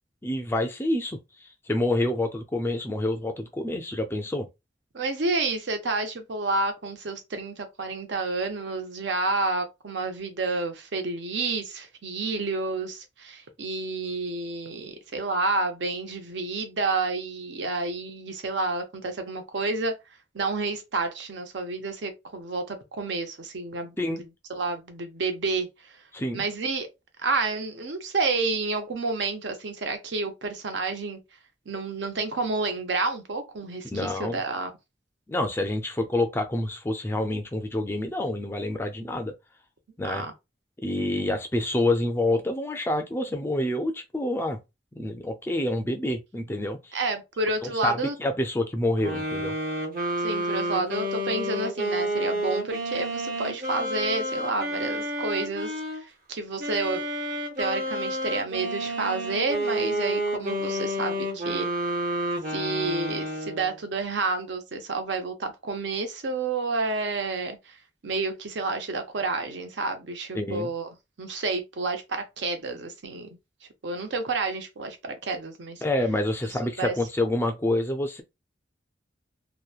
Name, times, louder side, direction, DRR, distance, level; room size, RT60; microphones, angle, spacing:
voice 1, 0.2-4.5 24.0-24.2 26.1-26.4 33.9-34.4 35.3-39.3 40.0-40.2 40.8-44.6 45.0-47.0 47.6-49.6 70.3-70.7 75.8-78.2, left 1 dB, 10° left, 0.3 m, -27 dB
voice 2, 4.9-19.9 20.3-24.2 24.5-26.0 26.3-26.9 27.2-31.2 31.7-34.7 40.0-40.3 46.9-48.2 50.2-57.0 57.6-61.7 62.5-67.8 68.0-70.9 71.2-73.3 73.8-75.8 76.8-76.9, right 3 dB, 75° right, 0.7 m, -30 dB
sound 1, 49.0-56.0 56.6-63.8, equal, 50° right, 0.8 m, -30 dB
2.9 x 2.1 x 2.3 m
head